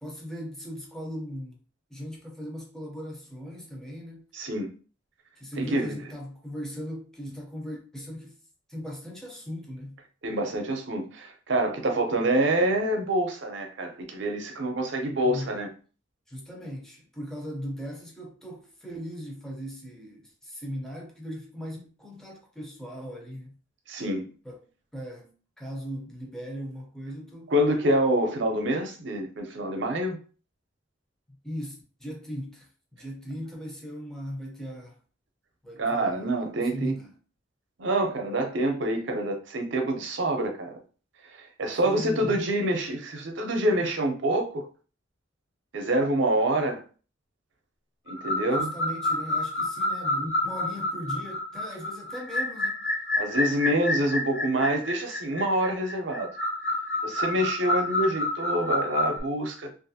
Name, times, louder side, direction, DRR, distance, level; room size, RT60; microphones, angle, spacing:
voice 1, 0.0-1.6 1.9-4.3 5.4-8.4 8.7-10.0 15.2-15.6 16.3-23.6 24.4-27.5 31.4-35.0 35.6-37.1 41.8-42.4 48.5-53.0, equal, 5° left, 0.7 m, -38 dB
voice 2, 4.3-4.7 5.6-6.0 10.2-15.7 23.9-24.3 27.5-30.2 35.8-36.9 37.8-40.7 41.4-44.6 45.7-46.8 48.1-48.7 53.2-56.3 57.0-59.7, right 1 dB, 65° right, 0.7 m, -26 dB
sound 1, 48.1-59.2, left 2 dB, 60° left, 1.4 m, -29 dB
3.0 x 2.5 x 2.8 m
head